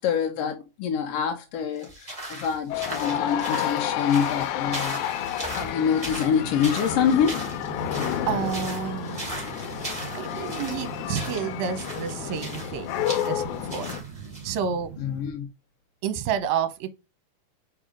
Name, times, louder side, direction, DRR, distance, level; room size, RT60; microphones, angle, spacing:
voice 1, 0.0-5.0 5.5-7.4 15.0-15.5, left 7 dB, 75° left, 1.5 m, -26 dB
sound 1, 1.7-14.5, right 1 dB, 10° right, 2.5 m, -38 dB
sound 2, 2.7-14.0, left 10 dB, 90° left, 2.1 m, -30 dB
sound 3, 6.3-15.3, right 6 dB, 50° right, 1.8 m, -42 dB
voice 2, 8.3-9.2 10.1-12.9 13.2-13.4 13.7-13.9 14.4-14.9 16.0-16.9, right 8 dB, 75° right, 2.1 m, -29 dB
4.8 x 4.7 x 4.9 m
omnidirectional pair, 3.5 m